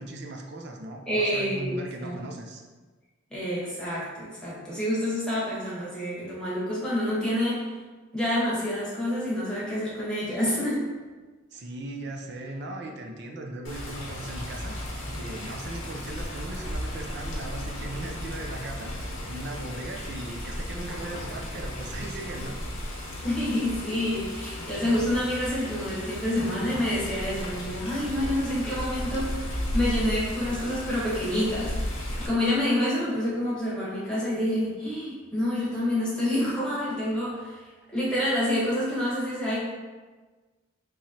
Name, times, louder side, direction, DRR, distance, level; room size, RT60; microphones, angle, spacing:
voice 1, 0.0-2.6 11.5-14.8 15.1-18.9 19.3-22.6, right 2 dB, 55° right, 2 dB, 0.5 m, -38 dB
voice 2, 1.1-2.3 3.3-7.6 8.1-10.9 23.2-31.8 32.2-39.6, left 1 dB, 5° left, -8 dB, 1.1 m, -28 dB
Water, 13.6-32.3, left 1 dB, 75° left, 0.9 m, -34 dB
3.8 x 3.0 x 2.8 m, 1.3 s
head